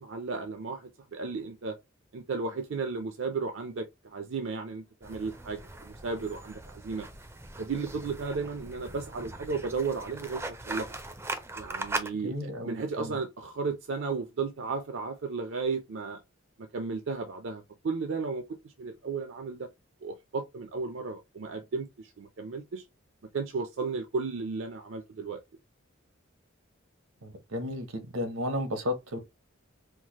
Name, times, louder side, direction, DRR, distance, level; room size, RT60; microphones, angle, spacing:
voice 1, 0.0-1.8 2.1-7.1 7.6-10.9 11.6-16.2 16.6-19.7 20.0-22.8 23.3-25.4, right 4 dB, 65° right, 0.5 m, -34 dB
sound 1, 5.0-12.1, right 2 dB, 10° right, 0.4 m, -39 dB
voice 2, 12.2-13.2 27.2-29.2, left 1 dB, 85° right, 0.9 m, -33 dB
4.5 x 2.1 x 2.9 m
head